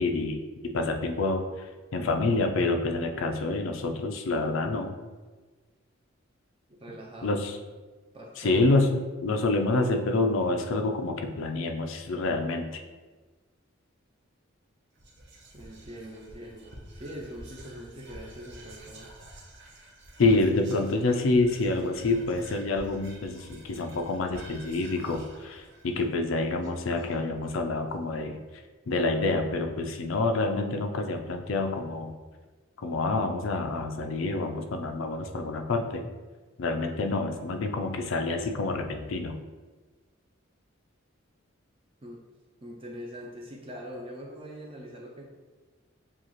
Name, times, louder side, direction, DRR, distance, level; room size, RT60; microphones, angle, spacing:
voice 1, 0.0-1.4 1.9-5.0 7.2-7.6 8.4-12.8 20.2-28.4 28.9-32.2 32.8-36.0 36.6-39.4, left 2 dB, 80° left, 4 dB, 0.5 m, -27 dB
voice 2, 0.7-1.0 6.7-7.4 8.1-8.7 15.5-19.1 42.0-42.2 42.6-45.2, equal, 25° right, -2 dB, 0.5 m, -43 dB
Whispering, 15.0-27.4, right 1 dB, 60° right, 0.9 m, -49 dB
7.1 x 2.4 x 3.0 m, 1.3 s
head